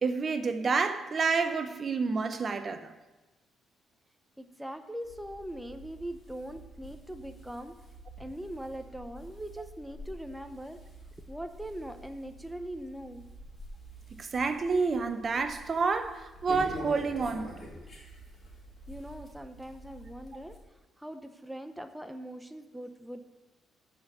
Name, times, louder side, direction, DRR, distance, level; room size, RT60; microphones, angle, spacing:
voice 1, 0.0-2.9 14.2-17.6, right 4 dB, 40° right, 0.7 m, -29 dB
voice 2, 4.4-7.7 8.2-10.8 11.3-13.3 18.9-20.5 21.0-23.3, right 1 dB, 5° right, 0.8 m, -41 dB
sound 1, 5.0-20.6, equal, 35° left, 3.7 m, -47 dB
9.2 x 6.0 x 8.3 m
cardioid pair, 90°, 0 cm